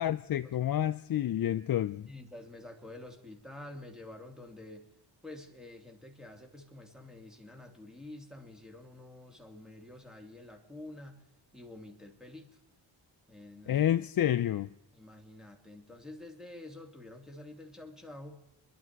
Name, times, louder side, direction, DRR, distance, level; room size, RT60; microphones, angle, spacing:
voice 1, 0.0-2.1 13.7-14.7, left 11 dB, 50° left, 0.5 m, -29 dB
voice 2, 2.1-4.9 5.2-11.2 11.5-12.6 13.3-13.8 14.9-18.5, left 2 dB, ahead, 2.6 m, -48 dB
28.0 x 11.0 x 4.6 m
cardioid pair, 70°, 47 cm